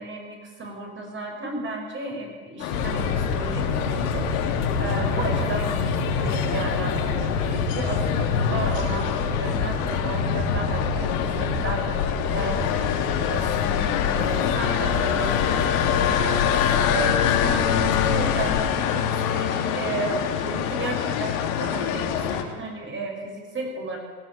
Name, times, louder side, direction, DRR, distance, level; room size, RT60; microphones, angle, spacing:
voice 1, 0.0-12.0 12.3-16.4 16.9-24.0, right 3 dB, 25° right, 1 dB, 6.8 m, -34 dB
sound 1, 2.6-22.4, left 9 dB, 65° left, 3.3 m, -26 dB
sound 2, 2.7-18.6, left 5 dB, 85° left, 5.2 m, -27 dB
19.5 x 16.5 x 9.1 m, 1.5 s
supercardioid pair, 125°, 44 cm